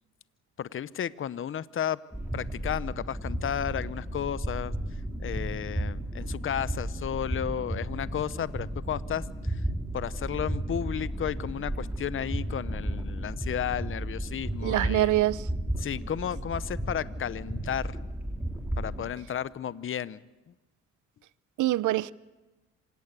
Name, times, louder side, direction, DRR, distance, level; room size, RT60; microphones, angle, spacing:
voice 1, 0.6-2.0 2.3-4.7 5.2-9.6 9.9-15.1 15.8-18.0 18.8-20.2, left 9 dB, 45° left, 0.8 m, -33 dB
sound 1, 2.1-19.0, right 1 dB, 5° right, 3.7 m, -34 dB
voice 2, 14.6-15.5 21.6-22.1, right 15 dB, 80° right, 0.7 m, -25 dB
26.5 x 18.0 x 8.2 m
cardioid pair, 90°, 30 cm